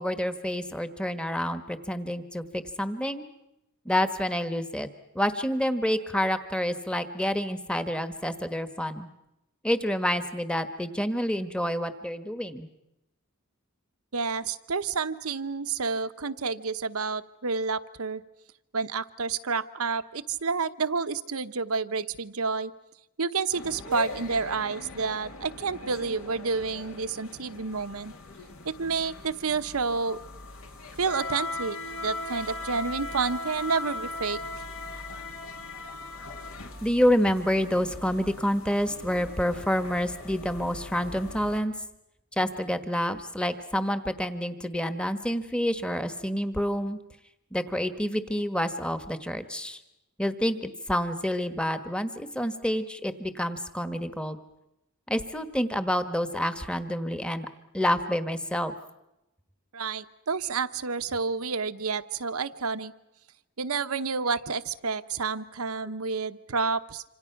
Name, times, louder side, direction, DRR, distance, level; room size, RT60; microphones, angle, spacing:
voice 1, 0.0-3.3 3.8-4.9 5.1-9.1 9.6-12.7 36.8-41.7 42.4-47.0 47.5-49.8 50.2-54.4 55.1-57.5 57.7-58.7, equal, 5° left, 10 dB, 1.3 m, -28 dB
voice 2, 14.1-18.2 18.7-22.7 23.2-28.1 28.6-30.2 31.0-34.4 59.7-62.9 63.6-67.0, right 4 dB, 75° right, 12 dB, 1.0 m, -29 dB
sound 1, 23.5-41.6, left 2 dB, 65° left, 2.6 m, -40 dB
26.5 x 26.5 x 5.9 m, 0.90 s
head